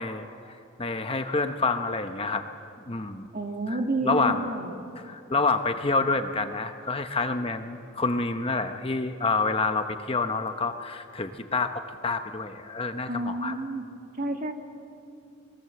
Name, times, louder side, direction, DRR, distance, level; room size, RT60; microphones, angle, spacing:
voice 1, 0.0-2.4 2.9-3.3 3.7-4.4 5.0-13.5, left 3 dB, 25° left, 7 dB, 0.9 m, -28 dB
voice 2, 3.3-4.7 13.1-13.8 14.2-14.5, right 2 dB, 40° right, 4 dB, 2.2 m, -29 dB
28.0 x 21.0 x 7.8 m, 2.6 s
head